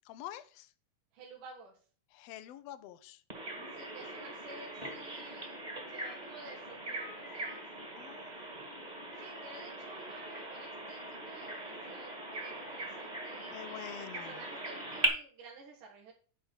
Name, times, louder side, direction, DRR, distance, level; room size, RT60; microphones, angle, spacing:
voice 1, 0.1-0.7 2.1-3.2 3.5-3.9 8.0-9.2 13.5-14.4, left 13 dB, 80° left, 12 dB, 1.5 m, -48 dB
voice 2, 1.1-1.8 3.7-5.6 5.9-7.6 9.1-16.1, right 4 dB, 85° right, -1 dB, 3.1 m, -53 dB
Bird vocalization bird call bird song, 3.3-15.1, right 2 dB, 15° right, 1.6 m, -40 dB
10.5 x 3.7 x 7.2 m, 0.40 s
omnidirectional pair, 3.6 m